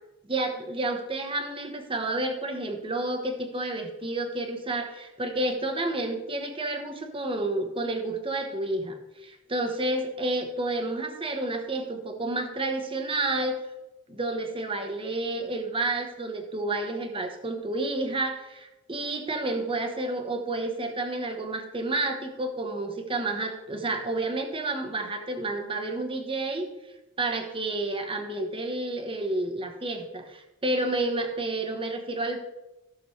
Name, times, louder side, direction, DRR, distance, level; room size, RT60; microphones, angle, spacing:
voice 1, 0.3-13.6 14.1-26.7 27.2-32.4, right 2 dB, 25° right, 5 dB, 1.2 m, -30 dB
15.5 x 6.3 x 3.3 m, 0.98 s
head